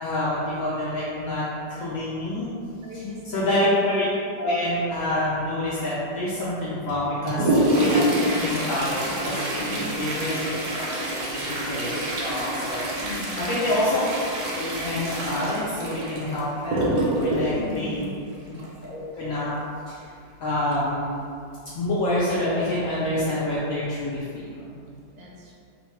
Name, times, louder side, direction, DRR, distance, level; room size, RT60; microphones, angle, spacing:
voice 1, 0.0-2.5 3.2-4.1 4.4-12.8 13.2-14.0 14.5-18.1 18.5-18.6 18.8-19.5 19.9-20.0 20.4-21.1 21.7-24.7, left 1 dB, 70° left, -9 dB, 0.8 m, -27 dB
voice 2, 2.8-3.5 9.5-10.0 13.0-13.5 17.5-18.1 25.1-25.5, left 1 dB, 85° right, -4 dB, 1.3 m, -37 dB
Toilet flush, 6.9-18.8 20.7-20.8 21.2-21.3 22.0-22.1 22.8-23.0 23.5-23.6, right 1 dB, 70° right, 1.0 m, -26 dB
2.9 x 2.2 x 3.1 m, 2.4 s
omnidirectional pair, 1.9 m